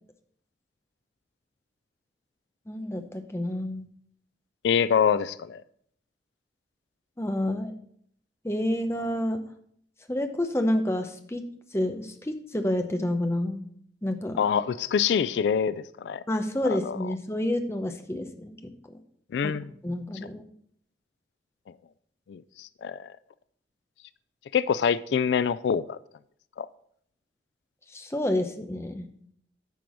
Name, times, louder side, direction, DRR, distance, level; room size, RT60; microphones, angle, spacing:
voice 1, 2.7-3.9 7.2-7.7 8.4-9.4 10.1-11.4 11.7-13.6 14.0-14.4 16.3-19.0 19.4-19.5 19.8-20.5 27.9-29.1, left 1 dB, 15° left, 6 dB, 0.7 m, -29 dB
voice 2, 4.6-5.6 14.4-16.2 16.7-17.0 19.3-19.7 22.3-23.1 24.5-26.0 26.6-26.7, left 7 dB, 80° left, 16 dB, 0.3 m, -25 dB
9.2 x 4.5 x 6.2 m, 0.67 s
head